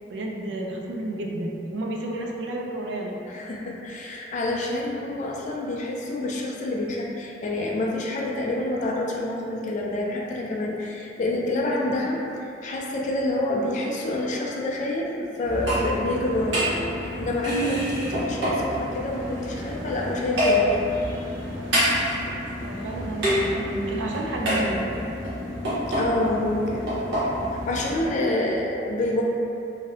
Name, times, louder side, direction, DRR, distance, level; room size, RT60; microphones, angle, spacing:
voice 1, 0.1-3.2 22.6-24.9, right 1 dB, 75° right, 0 dB, 0.3 m, -31 dB
voice 2, 3.3-16.7 17.0-21.1 25.9-26.9 27.5-29.2, left 1 dB, 40° left, -2 dB, 0.3 m, -27 dB
sound 1, 15.4-28.1, equal, 90° right, 0.8 m, -27 dB
2.6 x 2.0 x 2.5 m, 2.8 s
head